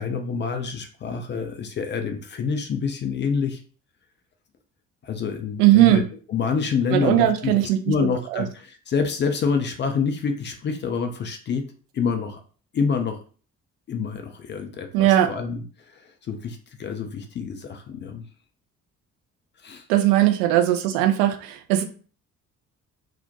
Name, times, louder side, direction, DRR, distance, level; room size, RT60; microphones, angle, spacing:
voice 1, 0.0-3.6 5.0-6.0 6.3-7.5 7.9-11.6 11.9-12.4 12.7-13.2 13.9-18.2 19.6-19.9, left 5 dB, 30° left, 5 dB, 0.4 m, -27 dB
voice 2, 5.6-6.0 6.9-7.8 8.3-8.4 14.9-15.3 19.9-21.8, right 13 dB, 65° right, 6 dB, 0.5 m, -18 dB
2.5 x 2.1 x 2.7 m, 0.40 s
figure-of-eight pair, 45°, 41 cm